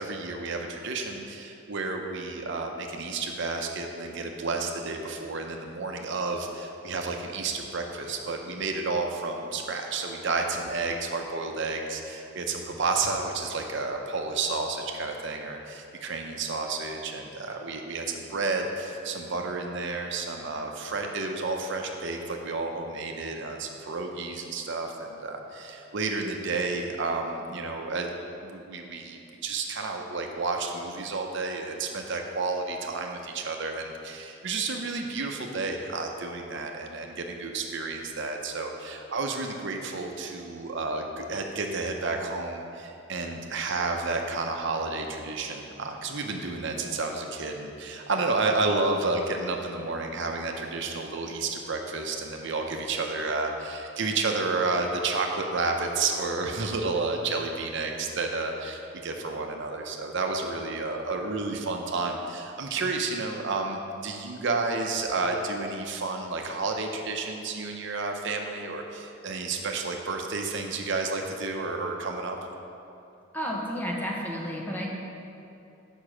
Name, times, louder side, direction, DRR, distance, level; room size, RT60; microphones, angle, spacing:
voice 1, 0.0-28.1 28.4-72.4, right 3 dB, 60° right, 3 dB, 0.7 m, -31 dB
voice 2, 73.3-74.9, equal, 10° left, -2 dB, 0.9 m, -31 dB
6.7 x 5.3 x 6.1 m, 2.7 s
head